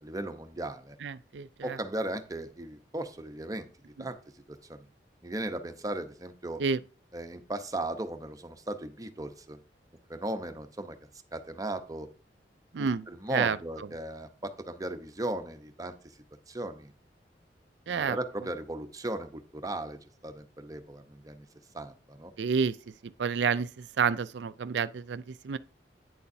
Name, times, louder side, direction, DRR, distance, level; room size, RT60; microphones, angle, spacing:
voice 1, 0.0-1.0 1.6-3.7 4.0-4.2 4.5-4.9 5.2-6.6 7.1-9.6 10.1-11.0 11.3-12.1 12.8-15.9 16.5-16.9 17.9-21.5 21.7-22.3, right 1 dB, 20° right, 0.9 m, -37 dB
voice 2, 1.0-1.8 6.6-6.8 12.7-13.0 13.3-13.6 17.9-18.2 22.4-22.8 23.0-25.6, right 6 dB, 80° right, 0.4 m, -29 dB
9.6 x 6.9 x 2.7 m
head